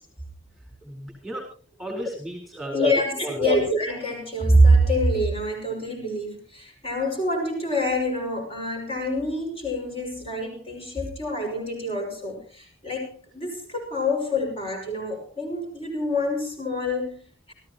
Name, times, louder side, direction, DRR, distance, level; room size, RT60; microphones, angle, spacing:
voice 1, 0.8-1.5 1.8-2.8 3.2-3.6, right 1 dB, ahead, 0 dB, 4.1 m, -34 dB
voice 2, 2.7-17.5, equal, 30° left, 1 dB, 5.8 m, -25 dB
28.5 x 14.0 x 2.9 m, 0.39 s
head